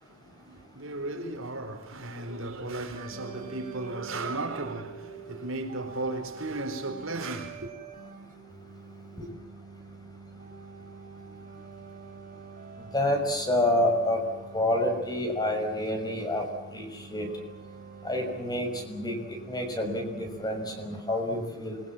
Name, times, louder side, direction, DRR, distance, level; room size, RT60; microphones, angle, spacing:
voice 1, 0.0-7.7, right 2 dB, 70° right, 4.4 m, -35 dB
sound 1, 3.0-20.9, right 5 dB, 40° right, 5.2 m, -46 dB
voice 2, 12.9-14.2 14.5-16.4 16.7-17.3 18.0-21.8, left 1 dB, 20° left, 6.1 m, -28 dB
28.0 x 23.0 x 7.5 m
head